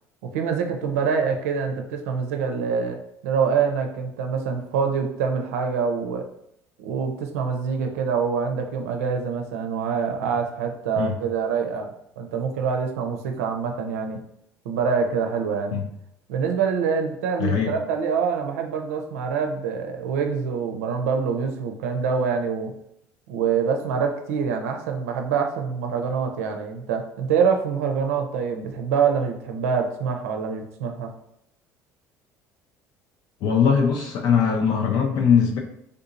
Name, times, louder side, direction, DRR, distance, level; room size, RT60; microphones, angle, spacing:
voice 1, 0.2-6.3 6.8-11.9 12.2-14.2 14.7-15.8 16.3-22.7 23.3-31.1, right 6 dB, 85° right, 4 dB, 0.4 m, -25 dB
voice 2, 17.4-17.7 33.4-35.6, left 7 dB, 60° left, 2 dB, 0.4 m, -21 dB
3.5 x 2.7 x 2.5 m, 0.75 s
hypercardioid pair, 70°, 8 cm